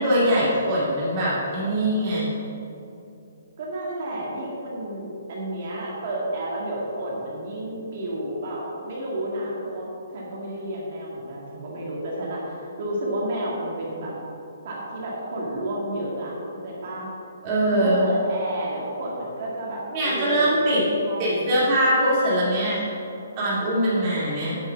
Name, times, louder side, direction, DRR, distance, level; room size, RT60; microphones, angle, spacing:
voice 1, 0.0-2.3 17.4-18.1 19.9-20.9 21.2-22.8 23.4-24.6, right 1 dB, 20° right, -9 dB, 2.6 m, -22 dB
voice 2, 3.6-9.9 10.1-14.2 14.6-16.3 16.6-17.1 17.7-21.8, right 1 dB, 35° right, -4 dB, 1.9 m, -31 dB
9.9 x 5.5 x 7.1 m, 2.8 s
hypercardioid pair, 180°, 0 cm